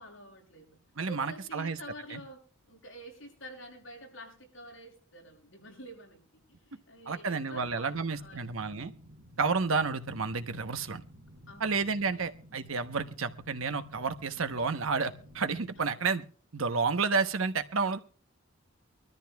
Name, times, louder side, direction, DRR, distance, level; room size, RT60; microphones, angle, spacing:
voice 1, 0.0-0.8 1.1-8.5 11.5-12.2 15.0-15.2 15.8-16.0, equal, 65° left, -1 dB, 6.2 m, -49 dB
voice 2, 1.0-1.8 2.1-2.2 7.1-8.9 9.4-11.0 11.6-16.2 16.5-18.0, right 4 dB, 85° right, 9 dB, 1.0 m, -30 dB
sound 1, 7.5-15.8, equal, 40° right, 5.3 m, -54 dB
24.5 x 13.5 x 2.3 m, 0.39 s
head